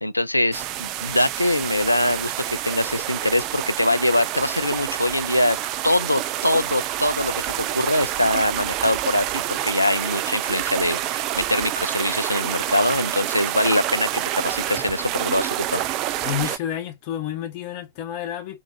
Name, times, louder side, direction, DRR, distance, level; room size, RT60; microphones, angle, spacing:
voice 1, 0.0-5.6 5.8-15.8, left 1 dB, 85° left, 0.3 m, -23 dB
sound 1, 0.5-16.6, right 13 dB, 40° right, 0.3 m, -28 dB
voice 2, 16.2-18.6, left 11 dB, 45° left, 1.0 m, -30 dB
3.6 x 2.9 x 2.6 m
figure-of-eight pair, 90°, 0 cm